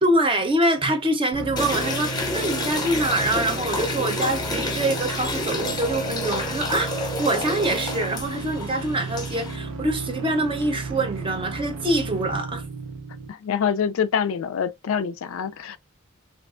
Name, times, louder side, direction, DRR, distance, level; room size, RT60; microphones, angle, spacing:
voice 1, 0.0-12.6, right 1 dB, 25° right, 0.7 m, -25 dB
sound 1, 1.3-13.3, right 3 dB, 75° right, 0.6 m, -34 dB
sound 2, 1.6-9.6, left 2 dB, 20° left, 0.8 m, -29 dB
voice 2, 13.3-15.8, left 7 dB, 75° left, 0.4 m, -25 dB
3.3 x 2.5 x 2.4 m
head